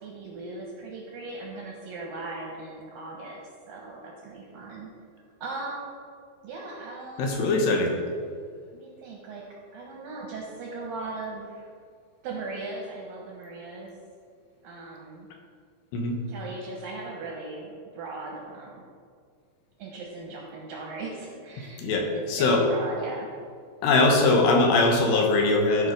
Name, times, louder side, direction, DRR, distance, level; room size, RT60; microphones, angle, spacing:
voice 1, 0.0-3.4 3.7-4.9 5.4-6.0 6.4-7.4 8.7-9.4 9.7-11.7 12.2-13.9 14.6-15.3 16.3-18.8 19.8-21.8 22.1-23.3, right 3 dB, 70° right, -1 dB, 2.3 m, -38 dB
voice 2, 7.2-7.9 15.9-16.2 21.8-22.6 23.8-25.9, left 2 dB, 75° left, 2 dB, 3.1 m, -21 dB
12.5 x 5.2 x 5.0 m, 2.1 s
omnidirectional pair, 5.1 m